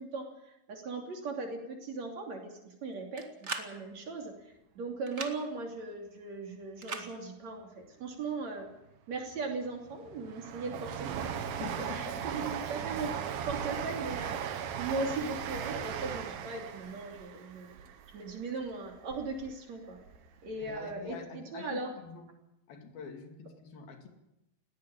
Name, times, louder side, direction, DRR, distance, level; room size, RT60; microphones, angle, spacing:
voice 1, 0.0-8.7 9.1-11.7 11.9-13.1 13.5-17.8 18.1-20.0 20.4-21.9, right 3 dB, 45° right, 2 dB, 3.9 m, -38 dB
sound 1, 3.2-3.7 5.1-5.3 6.8-7.1, right 3 dB, 30° right, 1.3 m, -38 dB
Train, 9.3-19.5 19.9-20.8 21.1-21.2, right 8 dB, 70° right, 3.1 m, -38 dB
voice 2, 11.6-12.3 20.6-22.3 22.7-24.1, left 6 dB, 70° left, 5 dB, 4.3 m, -45 dB
20.0 x 17.0 x 8.9 m, 0.89 s
omnidirectional pair, 4.4 m